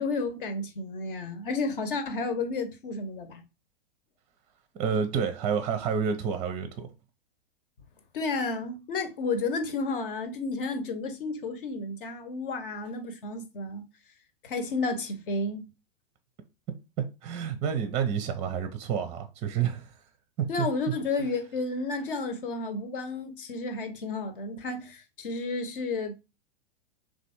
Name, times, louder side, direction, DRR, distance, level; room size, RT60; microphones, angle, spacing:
voice 1, 0.0-3.4 8.1-13.8 14.4-15.7 20.5-26.1, left 3 dB, 60° left, 0.9 m, -32 dB
voice 2, 4.8-6.9 17.2-19.9 20.6-20.7, right 7 dB, 20° right, 0.5 m, -29 dB
3.4 x 2.5 x 4.2 m
figure-of-eight pair, 100°, 30 cm